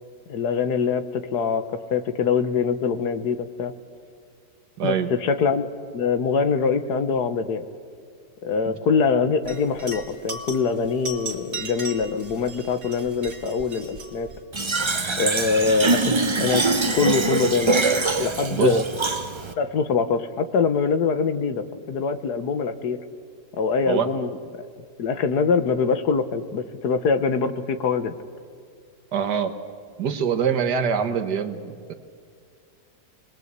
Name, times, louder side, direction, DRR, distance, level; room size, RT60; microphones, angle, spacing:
voice 1, 0.3-3.7 4.8-5.7 5.9-7.6 8.4-14.3 15.2-16.6 16.9-18.8 19.6-23.0 23.6-24.7 25.0-28.1, left 5 dB, 75° left, 10 dB, 1.7 m, -24 dB
voice 2, 4.8-5.1 18.5-18.8 23.9-24.1 29.1-29.5 30.0-31.9, right 7 dB, 80° right, 8 dB, 1.9 m, -24 dB
sound 1, 9.5-14.4, right 2 dB, 55° right, 2.9 m, -37 dB
Fill (with liquid), 14.5-19.5, right 3 dB, 25° right, 0.6 m, -23 dB
28.5 x 21.0 x 8.2 m, 2.2 s
omnidirectional pair, 1.7 m